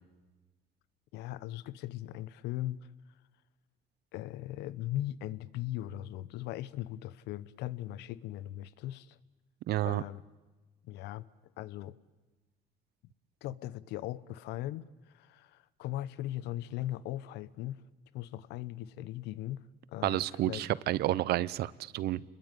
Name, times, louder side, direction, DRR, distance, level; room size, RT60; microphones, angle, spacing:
voice 1, 1.1-2.8 4.1-9.2 9.8-10.2 10.8-11.3 11.6-12.0 13.4-17.8 18.1-19.6 19.9-20.7, left 14 dB, 90° left, 19 dB, 1.0 m, -39 dB
voice 2, 9.7-10.0 20.0-22.2, right 14 dB, 70° right, 20 dB, 0.9 m, -30 dB
29.0 x 21.0 x 9.2 m, 1.2 s
cardioid pair, 110°, 17 cm